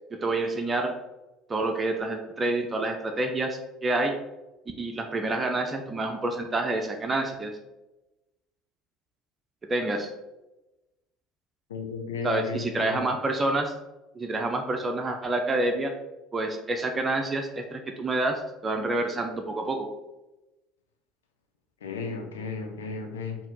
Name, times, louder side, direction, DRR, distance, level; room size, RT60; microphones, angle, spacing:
voice 1, 0.2-0.9 1.5-4.2 4.8-7.5 9.7-10.1 12.2-13.7 14.1-15.9 16.3-19.9, right 2 dB, 25° right, 4 dB, 0.6 m, -28 dB
voice 2, 11.7-13.1 21.8-23.4, left 4 dB, 80° left, 4 dB, 0.6 m, -34 dB
4.5 x 2.8 x 3.6 m, 0.99 s
figure-of-eight pair, 65°, 0 cm